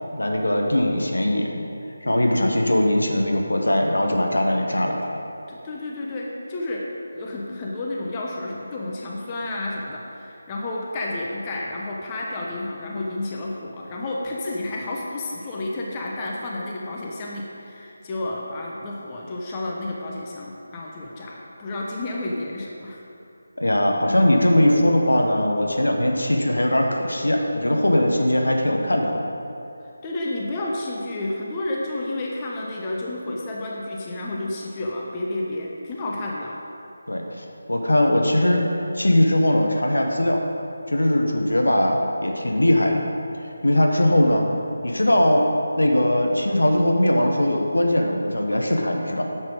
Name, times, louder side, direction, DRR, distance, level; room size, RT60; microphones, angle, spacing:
voice 1, 0.1-1.6 2.0-5.1 23.6-29.2 37.1-38.6 38.9-40.4 40.9-43.0 43.6-44.5 44.8-45.4 45.8-49.2, left 1 dB, 70° left, 1 dB, 1.4 m, -20 dB
voice 2, 5.5-6.9 7.1-23.0 30.0-36.6, left 2 dB, 20° left, -3 dB, 0.9 m, -31 dB
10.0 x 7.4 x 5.3 m, 2.7 s
figure-of-eight pair, 160°, 0 cm